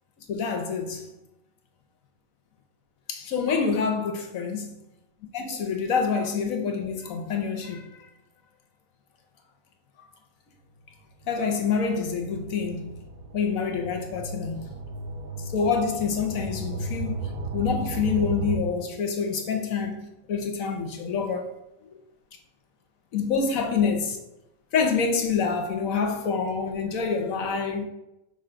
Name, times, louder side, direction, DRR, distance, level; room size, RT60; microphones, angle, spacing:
voice 1, 0.3-1.1 3.1-4.7 5.3-8.1 11.3-13.0 13.3-14.8 15.4-17.2 17.5-21.5 23.1-24.2 24.7-27.8, left 5 dB, 65° left, 1.0 m, -27 dB
sound 1, 11.2-18.6, right 2 dB, 70° right, 1.2 m, -35 dB
5.6 x 3.8 x 4.4 m
omnidirectional pair, 1.7 m